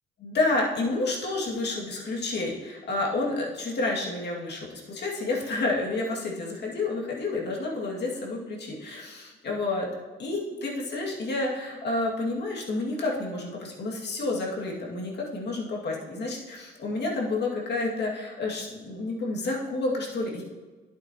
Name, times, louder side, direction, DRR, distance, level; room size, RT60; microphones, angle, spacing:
voice 1, 0.2-9.9 10.2-20.4, left 2 dB, 60° left, -2 dB, 2.3 m, -30 dB
11.0 x 8.5 x 3.0 m, 1.3 s
cardioid pair, 90°, 20 cm